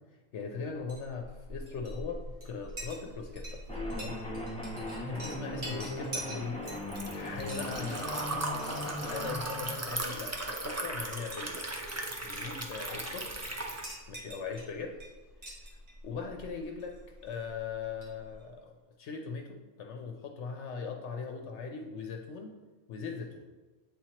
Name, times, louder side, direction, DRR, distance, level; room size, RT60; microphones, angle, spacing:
voice 1, 0.3-3.6 4.0-4.2 5.1-6.6 7.1-11.7 12.0-13.5 14.1-15.0 16.0-17.0 17.2-18.7 19.0-22.5 22.9-23.5, left 5 dB, 70° left, 2 dB, 0.9 m, -40 dB
Chink clink, 0.7-18.5, right 1 dB, 70° right, 1.9 m, -46 dB
sound 1, 3.7-9.7, left 1 dB, 5° left, 0.7 m, -38 dB
Liquid, 5.6-13.8, right 2 dB, 25° right, 0.4 m, -37 dB
8.0 x 4.4 x 2.9 m, 1.3 s
omnidirectional pair, 1.3 m